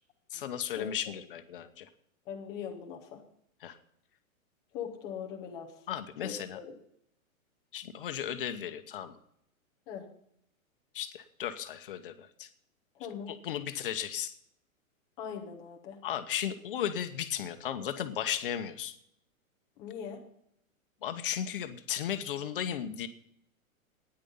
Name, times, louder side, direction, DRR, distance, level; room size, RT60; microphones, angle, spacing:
voice 1, 0.3-1.9 3.6-3.8 5.9-6.6 7.7-9.2 10.9-12.5 13.3-14.3 16.0-18.9 21.0-23.1, left 9 dB, 40° left, 9 dB, 0.9 m, -35 dB
voice 2, 2.3-3.2 4.7-5.7 6.2-6.7 9.9-10.1 13.0-13.3 15.2-16.0 19.8-20.2, left 7 dB, 10° left, 2 dB, 0.6 m, -41 dB
12.5 x 10.0 x 5.5 m, 0.73 s
hypercardioid pair, 170°, 42 cm